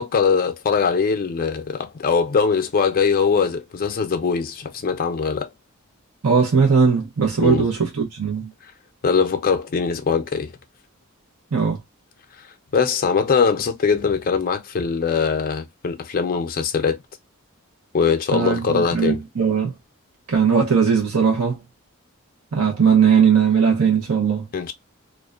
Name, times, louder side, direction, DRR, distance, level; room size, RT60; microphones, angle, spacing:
voice 1, 0.0-5.5 7.4-7.7 9.0-10.6 12.4-12.5 12.7-17.0 17.9-19.2 24.5-24.7, left 5 dB, 40° left, 0.5 m, -21 dB
voice 2, 6.2-8.5 11.5-11.8 18.3-19.7 20.3-21.6 22.5-24.5, right 6 dB, 75° right, 0.8 m, -18 dB
2.4 x 2.1 x 2.4 m
head